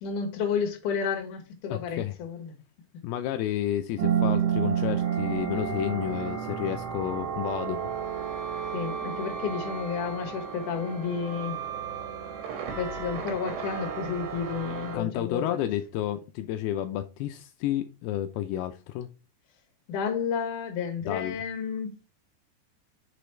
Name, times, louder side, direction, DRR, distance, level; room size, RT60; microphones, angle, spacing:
voice 1, 0.0-2.5 8.7-11.6 12.8-15.6 19.9-21.9, left 6 dB, 60° left, 2.5 m, -31 dB
voice 2, 1.7-2.1 3.0-7.9 14.9-19.1 21.1-21.4, left 12 dB, 85° left, 2.2 m, -31 dB
sound 1, 4.0-15.0, right 8 dB, 75° right, 3.7 m, -31 dB
7.0 x 5.1 x 4.3 m
omnidirectional pair, 4.9 m